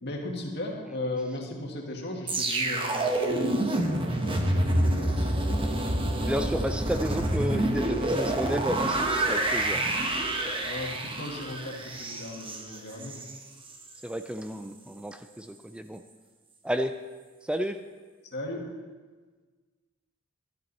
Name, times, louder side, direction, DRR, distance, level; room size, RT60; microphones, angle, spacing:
voice 1, 0.0-5.7 10.6-13.2 18.3-18.7, left 1 dB, 55° left, 0 dB, 2.0 m, -36 dB
sound 1, 2.3-13.4 13.7-13.9, right 1 dB, 25° right, 1.1 m, -27 dB
voice 2, 6.2-9.8 14.0-16.0 16.6-17.0 17.4-17.8, equal, 5° right, 8 dB, 0.3 m, -32 dB
13.0 x 11.0 x 4.2 m, 1.4 s
head